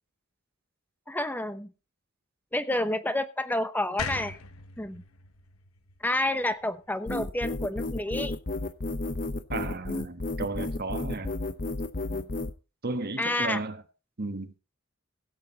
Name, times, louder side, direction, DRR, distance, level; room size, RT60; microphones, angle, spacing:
voice 1, 1.1-1.7 2.5-4.4 4.8-5.0 6.0-8.4 12.1-12.3 13.2-13.6, left 1 dB, 10° left, 0.9 m, -29 dB
sound 1, 4.0-7.1, left 4 dB, 85° left, 1.0 m, -40 dB
sound 2, 7.1-12.5, left 2 dB, 40° left, 0.8 m, -32 dB
voice 2, 9.5-11.3 12.8-13.8 14.2-14.5, right 3 dB, 50° right, 1.3 m, -34 dB
16.0 x 8.2 x 4.0 m
head